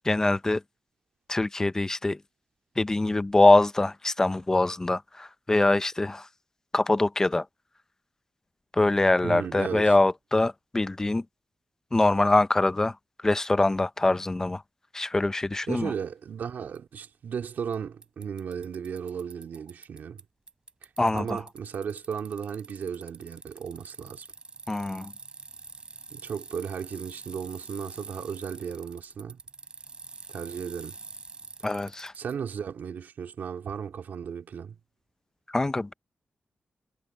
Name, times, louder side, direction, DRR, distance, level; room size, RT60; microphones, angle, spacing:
voice 1, 0.0-0.6 1.3-2.2 2.8-6.3 6.7-7.5 8.7-11.2 11.9-13.0 13.2-14.6 14.9-15.9 21.0-21.3 24.7-25.1 31.6-32.1 35.5-35.9, left 2 dB, 20° left, 0.6 m, -23 dB
voice 2, 9.2-9.9 15.7-20.2 20.8-24.3 26.1-29.4 30.3-31.0 32.2-34.8, right 7 dB, 90° right, 2.5 m, -35 dB
Bicycle, 16.7-16.8 17.7-17.8 18.0-20.2 20.5-32.3, right 4 dB, 30° right, 4.1 m, -45 dB
wide cardioid pair, 155°, 3 cm